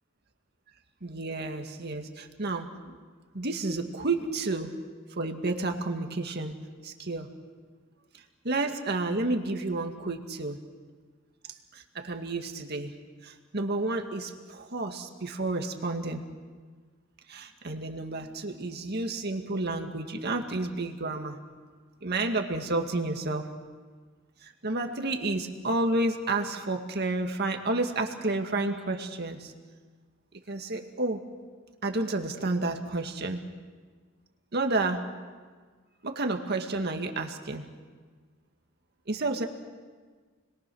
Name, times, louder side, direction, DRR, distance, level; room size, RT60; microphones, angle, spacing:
voice 1, 1.0-3.0 3.3-4.7 5.2-6.6 6.8-7.3 8.4-10.6 11.7-12.9 13.2-16.2 17.3-21.4 22.0-23.5 24.4-29.5 30.5-31.3 31.8-33.4 34.5-35.1 36.0-37.7 39.1-39.5, right 2 dB, 55° right, 4 dB, 2.0 m, -30 dB
30.0 x 22.0 x 6.3 m, 1.5 s
head